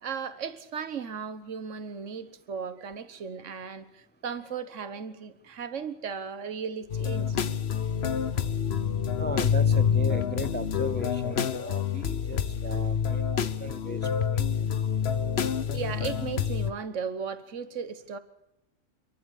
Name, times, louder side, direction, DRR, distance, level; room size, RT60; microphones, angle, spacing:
voice 1, 0.0-7.4 13.3-13.4 15.7-18.2, right 6 dB, 70° right, 12 dB, 1.6 m, -36 dB
sound 1, 6.9-16.7, left 7 dB, 55° left, 1.1 m, -27 dB
voice 2, 9.2-13.3 13.6-14.8, right 1 dB, 15° left, 14 dB, 0.4 m, -37 dB
27.5 x 11.5 x 8.4 m, 0.83 s
omnidirectional pair, 1.3 m